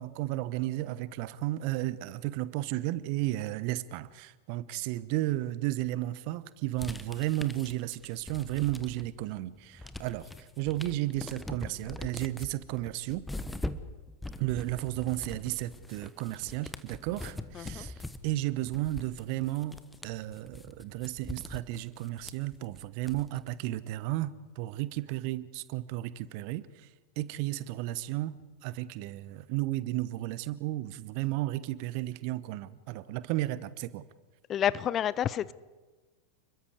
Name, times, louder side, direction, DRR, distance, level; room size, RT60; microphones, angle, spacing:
voice 1, 0.0-10.3 10.6-13.3 14.4-19.8 20.0-26.7 27.2-28.4 28.6-34.0, right 16 dB, 45° right, 1.0 m, -33 dB
sound 1, 6.8-9.2 9.5-23.5, left 2 dB, 5° left, 1.2 m, -43 dB
voice 2, 17.5-17.9 34.5-35.5, left 10 dB, 30° left, 0.6 m, -29 dB
30.0 x 22.0 x 4.8 m
figure-of-eight pair, 90°, 0 cm